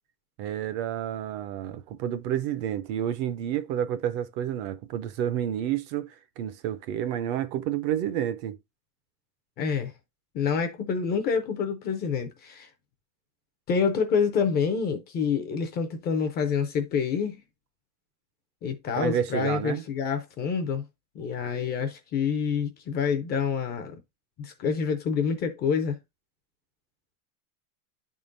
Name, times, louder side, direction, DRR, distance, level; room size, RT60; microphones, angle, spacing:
voice 1, 0.4-8.6 19.0-19.8, right 10 dB, 40° right, 0.4 m, -30 dB
voice 2, 9.6-9.9 10.3-12.7 13.7-17.4 18.6-20.9 21.2-24.0 24.4-26.0, left 6 dB, 25° left, 0.4 m, -27 dB
10.5 x 3.7 x 2.5 m
supercardioid pair, 150°, 45 cm